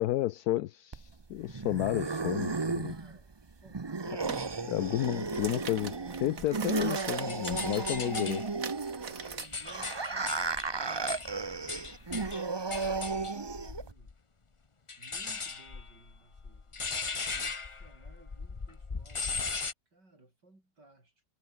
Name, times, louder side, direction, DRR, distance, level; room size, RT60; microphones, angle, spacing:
voice 1, 0.0-2.9 4.7-8.4, left 15 dB, 70° left, 1.0 m, -32 dB
sound 1, 0.9-13.9, right 4 dB, 35° right, 0.4 m, -34 dB
voice 2, 2.4-4.8 8.9-10.5 10.8-14.2 15.0-21.2, right 2 dB, 80° right, 8.4 m, -60 dB
sound 2, 4.3-4.5 4.9-9.5, right 6 dB, 55° right, 2.0 m, -42 dB
sound 3, 6.4-8.5 9.0-14.1 14.9-19.7, left 4 dB, 25° left, 0.7 m, -38 dB
omnidirectional pair, 1.8 m